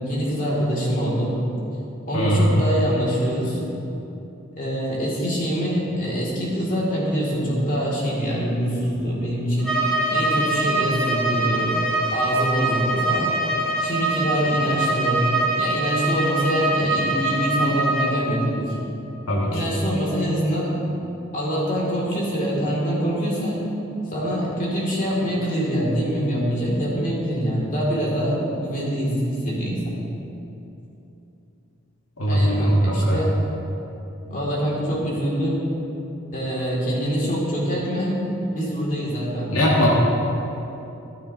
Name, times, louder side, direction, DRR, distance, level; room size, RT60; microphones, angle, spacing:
voice 1, 0.0-1.3 2.1-3.6 4.6-9.7 10.1-11.7 12.1-13.3 13.8-15.3 15.6-18.8 19.5-20.8 21.3-23.6 24.1-30.0 32.3-33.3 34.3-35.6 36.3-38.2 38.5-39.7, equal, 40° left, -4 dB, 2.7 m, -24 dB
voice 2, 2.1-2.5 19.3-19.6 32.2-33.3 39.5-39.9, equal, 90° left, -3 dB, 1.6 m, -20 dB
Bowed string instrument, 9.6-18.2, right 2 dB, 5° left, 2.1 m, -23 dB
13.0 x 12.5 x 2.9 m, 3.0 s
head